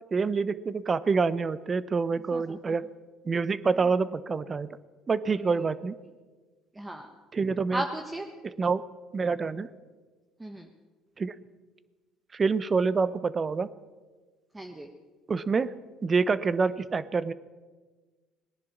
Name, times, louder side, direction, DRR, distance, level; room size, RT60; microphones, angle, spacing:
voice 1, 0.1-2.8 3.2-4.7 5.1-5.9 7.3-7.8 8.4-8.8 9.1-9.7 11.2-11.3 12.3-13.7 15.3-15.7 16.0-17.3, right 4 dB, 35° right, 16 dB, 0.8 m, -27 dB
voice 2, 2.3-2.7 5.3-5.7 6.7-7.1 7.7-8.3 10.4-10.7 14.5-14.9, right 1 dB, 15° right, 3 dB, 1.3 m, -36 dB
18.5 x 10.5 x 7.2 m, 1.3 s
supercardioid pair, 75°, 0 cm